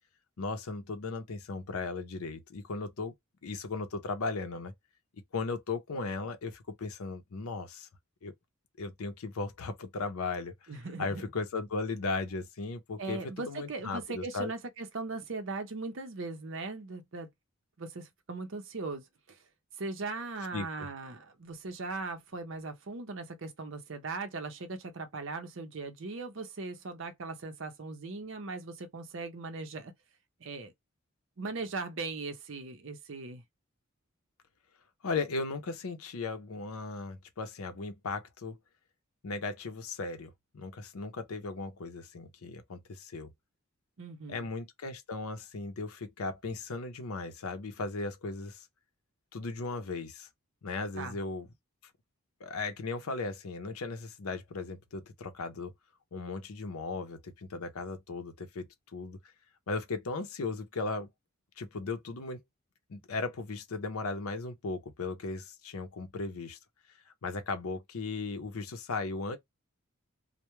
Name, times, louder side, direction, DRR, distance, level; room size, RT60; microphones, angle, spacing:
voice 1, 0.4-3.1 3.4-4.7 5.3-7.9 8.2-8.3 8.8-10.7 11.0-14.5 20.5-20.7 35.0-38.6 39.2-43.3 44.3-48.7 49.3-50.3 50.6-51.5 52.4-55.7 56.1-59.2 59.7-61.1 61.6-62.4 62.9-66.6 67.1-69.4, left 3 dB, 85° left, 0.6 m, -37 dB
voice 2, 10.7-11.3 13.0-17.3 17.8-19.4 19.8-29.9 30.4-30.7 31.4-33.4 44.0-44.5 51.0-51.2, right 3 dB, 60° right, 0.6 m, -39 dB
2.2 x 2.1 x 2.9 m
head